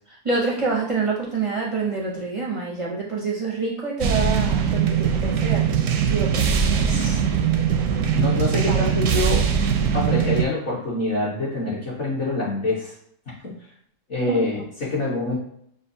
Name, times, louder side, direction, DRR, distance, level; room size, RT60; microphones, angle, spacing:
voice 1, 0.2-5.7 6.1-7.1 8.7-8.9 14.3-14.4, right 4 dB, 40° right, -5 dB, 0.4 m, -27 dB
sound 1, 4.0-10.5, right 7 dB, 70° right, 0.8 m, -21 dB
voice 2, 6.9-7.2 8.1-9.5 9.9-12.9 13.4-13.5 14.1-15.4, left 2 dB, 45° left, -8 dB, 1.3 m, -25 dB
6.5 x 2.4 x 2.6 m, 0.68 s
omnidirectional pair, 1.8 m